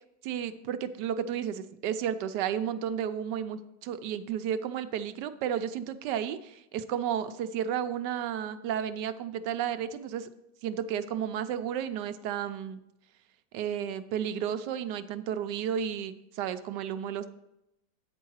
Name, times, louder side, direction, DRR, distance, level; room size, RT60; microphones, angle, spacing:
voice 1, 0.2-10.3 10.6-12.8 13.5-17.3, right 9 dB, 80° right, 11 dB, 1.2 m, -32 dB
8.8 x 4.6 x 6.2 m, 0.87 s
omnidirectional pair, 1.8 m